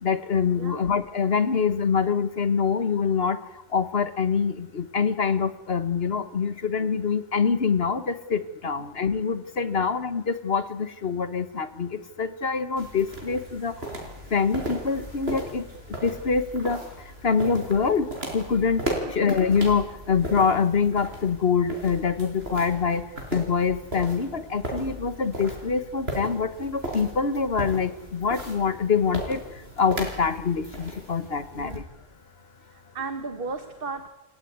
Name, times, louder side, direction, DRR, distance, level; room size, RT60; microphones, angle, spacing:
voice 1, 0.0-3.4 3.7-13.7 14.3-15.6 16.0-16.8 17.2-18.1 18.3-18.8 19.1-23.0 23.3-29.4 29.8-31.8, left 5 dB, 75° left, 13 dB, 1.7 m, -25 dB
sound 1, 12.8-31.8, right 1 dB, 85° right, 5.8 m, -36 dB
voice 2, 31.5-31.8 32.6-34.1, right 4 dB, 65° right, 10 dB, 1.6 m, -36 dB
29.0 x 17.0 x 9.4 m, 0.97 s
omnidirectional pair, 1.0 m